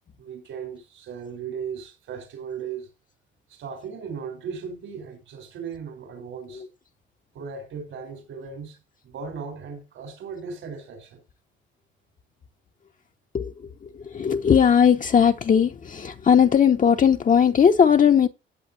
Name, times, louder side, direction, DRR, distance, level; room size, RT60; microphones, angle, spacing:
voice 1, 0.2-2.9 3.5-6.6 7.3-11.2, right 6 dB, 75° right, 4.5 m, -37 dB
voice 2, 13.3-18.3, left 7 dB, 40° left, 0.9 m, -19 dB
17.0 x 7.8 x 2.8 m
cardioid pair, 90°, 20 cm